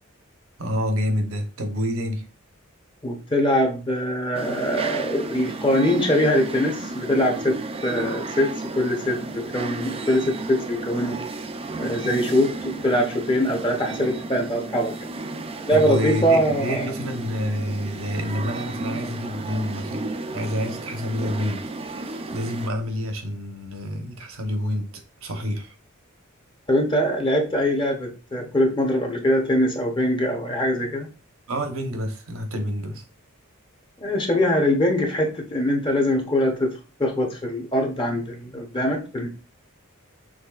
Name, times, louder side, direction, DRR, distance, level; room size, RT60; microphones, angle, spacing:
voice 1, 0.6-2.2 15.7-20.1 20.3-24.9 25.2-25.7 31.5-33.0, equal, 75° right, 1.0 m, -28 dB
voice 2, 3.0-11.2 11.8-15.1 15.7-16.9 26.7-31.1 34.0-39.3, equal, 25° left, 0.8 m, -23 dB
sound 1, 4.3-22.7, right 2 dB, 25° right, 0.4 m, -33 dB
6.2 x 3.2 x 2.4 m
head